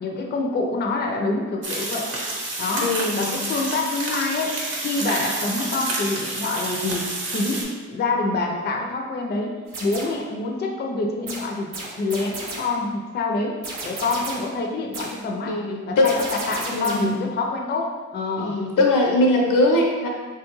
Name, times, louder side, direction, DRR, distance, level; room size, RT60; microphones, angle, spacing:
voice 1, 0.0-2.1 2.6-4.5 4.8-11.7 12.0-13.6 13.8-15.5 15.9-18.6, left 3 dB, 35° left, 1 dB, 0.4 m, -26 dB
sound 1, 1.6-7.6, right 2 dB, 50° right, 0.7 m, -29 dB
voice 2, 2.8-3.3 15.5-16.1 16.7-17.2 18.4-20.1, left 2 dB, 80° left, 0 dB, 0.6 m, -21 dB
sound 2, 9.7-10.3 11.3-12.8 13.6-14.6 14.9-15.3 16.0-17.2, right 2 dB, 85° right, 0.7 m, -34 dB
3.3 x 2.3 x 3.0 m, 1.4 s
cardioid pair, 90°, 31 cm